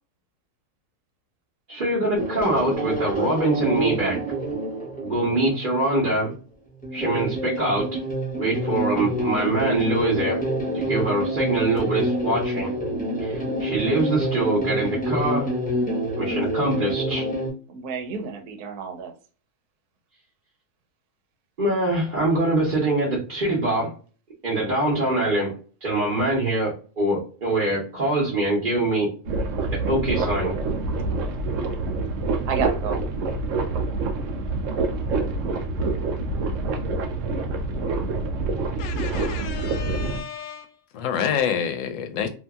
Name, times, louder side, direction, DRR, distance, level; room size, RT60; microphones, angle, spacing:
voice 1, 1.7-4.2 5.0-6.3 6.9-7.9 8.3-10.4 10.7-12.7 13.2-15.5 16.2-17.3 21.6-23.9 24.4-25.6 25.8-29.1 29.7-30.6, right 2 dB, 35° right, 1.0 m, -24 dB
sound 1, 2.1-6.0 6.8-17.5, right 1 dB, 10° left, 0.5 m, -27 dB
voice 2, 17.7-19.1 32.5-33.0, right 6 dB, 90° right, 1.2 m, -30 dB
sound 2, 29.2-40.2, right 3 dB, 70° right, 0.8 m, -26 dB
voice 3, 38.8-40.7 40.9-42.3, left 8 dB, 70° left, 0.9 m, -28 dB
2.8 x 2.6 x 2.2 m
omnidirectional pair, 1.6 m